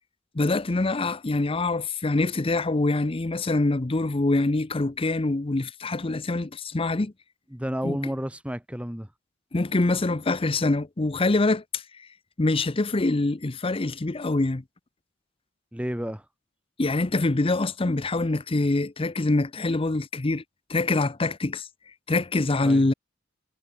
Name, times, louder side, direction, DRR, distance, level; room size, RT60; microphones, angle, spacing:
voice 1, 0.3-7.1 7.8-8.0 9.5-12.1 12.4-14.6 16.8-20.4 20.7-21.7 22.1-22.9, left 2 dB, 30° left, 0.7 m, -25 dB
voice 2, 7.5-9.1 15.7-16.3 22.6-22.8, equal, 5° right, 1.8 m, -31 dB
head